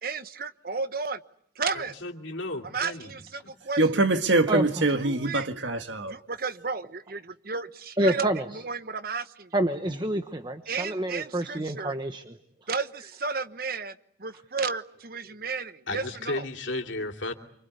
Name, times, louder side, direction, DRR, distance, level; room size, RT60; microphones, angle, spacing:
voice 1, 0.0-1.2 1.6-1.9 2.6-4.0 4.9-5.5 6.1-9.5 10.7-11.9 12.7-16.4, right 4 dB, 50° right, 1.2 m, -33 dB
voice 2, 1.7-3.1 15.9-17.3, left 2 dB, 80° left, 2.9 m, -34 dB
voice 3, 3.8-6.1, right 2 dB, 75° right, 1.7 m, -24 dB
voice 4, 8.0-8.4 9.5-12.3, right 1 dB, 25° right, 1.1 m, -27 dB
27.0 x 25.0 x 8.3 m
head